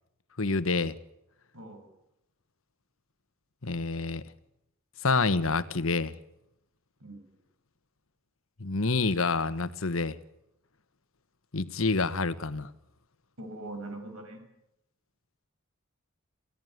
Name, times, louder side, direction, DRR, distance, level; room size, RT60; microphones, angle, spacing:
voice 1, 0.4-0.9 3.6-4.2 5.0-6.1 8.6-10.2 11.5-12.7, left 3 dB, 70° left, 1.3 m, -27 dB
voice 2, 1.5-1.9 7.0-7.2 13.4-14.4, right 2 dB, 90° right, 7.2 m, -41 dB
29.0 x 17.0 x 9.4 m
head